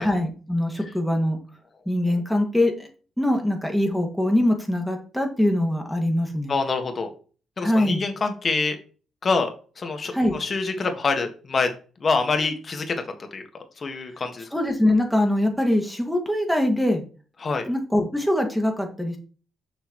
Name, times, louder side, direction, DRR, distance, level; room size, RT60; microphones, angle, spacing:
voice 1, 0.0-1.4 1.9-2.9 3.2-6.5 7.6-8.0 10.1-10.3 14.5-17.0 17.7-19.2, left 1 dB, ahead, 2 dB, 2.2 m, -23 dB
voice 2, 6.5-7.1 7.6-8.8 9.2-9.5 9.8-11.7 12.0-13.4 13.8-14.5 17.4-17.7, left 4 dB, 40° left, 6 dB, 1.7 m, -26 dB
6.5 x 6.4 x 3.1 m, 0.37 s
cardioid pair, 90°, 0 cm